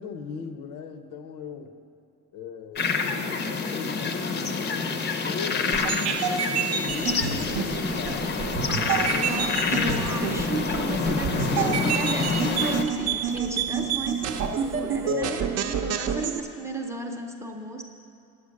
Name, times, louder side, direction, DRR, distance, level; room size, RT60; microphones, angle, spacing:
voice 1, 0.0-1.8 2.3-4.6 5.1-8.4 8.9-9.2 9.7-10.0 15.0-15.4, left 6 dB, 75° left, 8 dB, 0.8 m, -37 dB
sound 1, 2.7-12.8, left 4 dB, 35° left, 0.6 m, -27 dB
sound 2, 5.7-16.4, right 7 dB, 50° right, 0.6 m, -29 dB
sound 3, 6.9-15.2, right 8 dB, 85° right, 0.7 m, -43 dB
voice 2, 8.7-17.8, right 3 dB, 10° right, 1 dB, 0.5 m, -34 dB
8.9 x 8.6 x 6.4 m, 2.5 s
cardioid pair, 155°, 33 cm